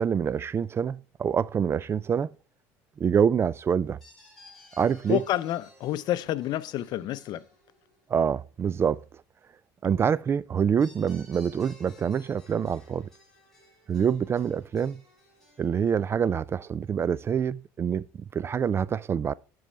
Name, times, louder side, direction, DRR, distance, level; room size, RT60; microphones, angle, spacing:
voice 1, 0.0-2.3 3.0-4.0 4.8-5.2 8.1-9.0 9.8-13.1 13.9-15.0 15.6-19.3, right 7 dB, 30° right, 0.3 m, -26 dB
sound 1, 1.7-2.1 4.0-8.4 10.8-16.1, left 1 dB, 5° left, 4.8 m, -56 dB
voice 2, 5.1-7.4, left 12 dB, 60° left, 0.7 m, -29 dB
10.5 x 5.4 x 3.3 m
supercardioid pair, 95°, 8 cm